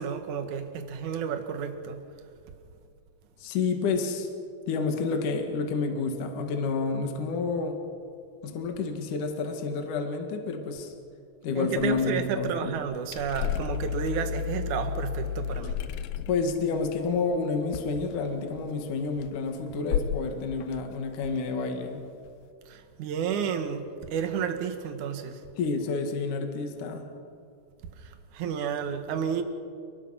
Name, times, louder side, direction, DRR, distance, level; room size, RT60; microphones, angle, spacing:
voice 1, 0.0-2.0 11.5-15.8 22.7-25.4 28.0-29.4, right 7 dB, 55° right, 7 dB, 2.6 m, -31 dB
voice 2, 3.4-4.3 4.7-7.8 8.4-10.9 11.4-12.7 16.3-22.0 25.6-27.1, left 4 dB, 55° left, 4 dB, 3.1 m, -29 dB
sound 1, 11.8-18.7 19.0-19.5 19.9-20.3 20.6-21.9, left 9 dB, 75° left, 2.5 m, -33 dB
29.5 x 20.5 x 5.8 m, 2.4 s
omnidirectional pair, 4.8 m